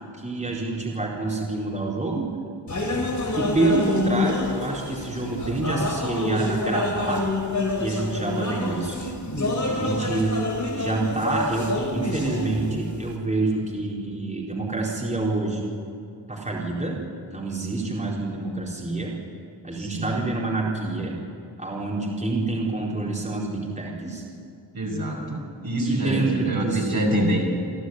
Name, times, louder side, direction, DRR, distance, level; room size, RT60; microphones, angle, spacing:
voice 1, 0.2-2.3 3.4-7.2 7.8-9.1 9.6-10.4 10.7-15.6 16.3-17.0 17.3-19.1 19.6-21.1 21.6-24.2 25.8-27.1, right 2 dB, 15° right, -4 dB, 4.3 m, -27 dB
sound 1, 2.7-13.2, left 2 dB, 40° left, 3.7 m, -27 dB
voice 2, 9.8-10.1 19.8-20.3 24.7-27.4, equal, 55° right, -3 dB, 5.5 m, -27 dB
29.0 x 11.5 x 9.6 m, 2.5 s
wide cardioid pair, 80°, 44 cm